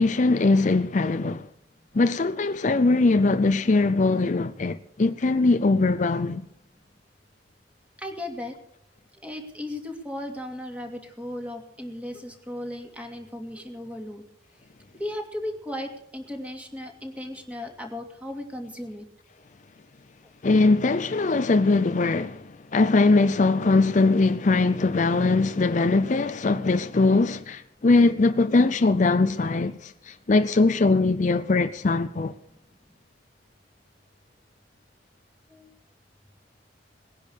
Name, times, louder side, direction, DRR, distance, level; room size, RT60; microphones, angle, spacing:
voice 1, 0.0-1.4 1.9-6.4 20.4-22.4 22.7-32.3, left 3 dB, 40° left, 0.5 m, -21 dB
voice 2, 8.0-8.5 9.2-14.2 15.0-19.1 35.5-35.7, left 1 dB, 10° right, 2.5 m, -36 dB
19.5 x 10.5 x 6.6 m
head